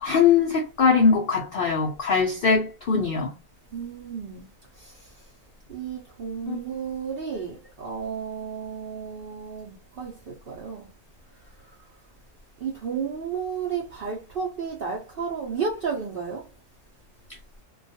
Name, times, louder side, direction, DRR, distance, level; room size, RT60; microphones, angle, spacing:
voice 1, 0.0-3.3 6.5-6.6, left 5 dB, 85° left, 0.5 m, -21 dB
voice 2, 3.7-4.5 4.8-5.0 5.7-10.9 12.6-16.4, right 6 dB, 65° right, 0.5 m, -32 dB
2.3 x 2.3 x 2.6 m
omnidirectional pair, 1.5 m